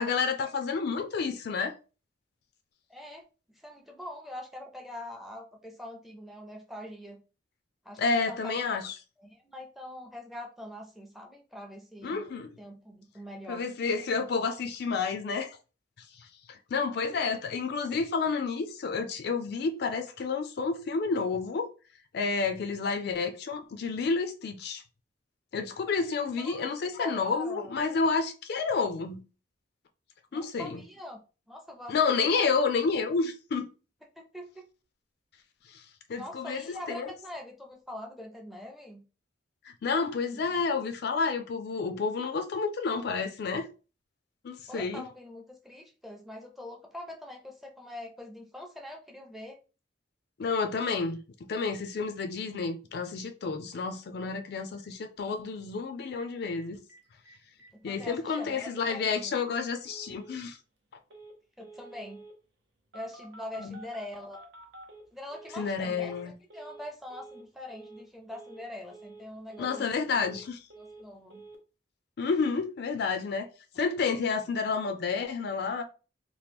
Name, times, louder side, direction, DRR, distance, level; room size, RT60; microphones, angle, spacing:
voice 1, 0.0-1.7 8.0-8.9 12.0-12.6 13.5-15.6 16.5-21.7 22.1-24.8 25.5-29.2 30.3-30.8 31.9-33.7 35.7-35.8 36.1-37.1 39.6-43.7 44.4-45.0 50.4-51.2 51.5-56.8 57.8-60.6 63.6-63.8 65.5-66.3 69.6-70.6 72.2-73.5 73.8-75.8, left 4 dB, 60° left, 0.4 m, -30 dB
voice 2, 2.9-3.2 3.6-7.2 7.9-8.0 8.3-8.6 9.2-12.2 12.6-13.6 26.4-26.7 27.0-27.7 30.3-31.2 31.5-31.9 32.2-32.5 34.2-34.7 36.2-39.0 40.3-40.4 44.7-49.6 57.8-59.4 61.6-62.2 62.9-64.4 65.1-66.1 66.5-69.9 70.8-71.4, left 1 dB, ahead, 0.5 m, -43 dB
Telephone, 56.2-56.3 56.5-56.6 56.9-57.0 57.3-57.7 58.0-58.1 58.3-58.7 59.1-59.2 59.7-60.3 61.1-61.3 61.6-62.3 62.9-65.6 65.9-66.2 66.5-66.8 67.1-67.4 67.7-68.0 68.3-68.6 68.9-69.2 69.5-70.4 70.7-71.0 71.3-71.6, right 2 dB, 70° right, 0.7 m, -49 dB
3.0 x 2.1 x 3.4 m
head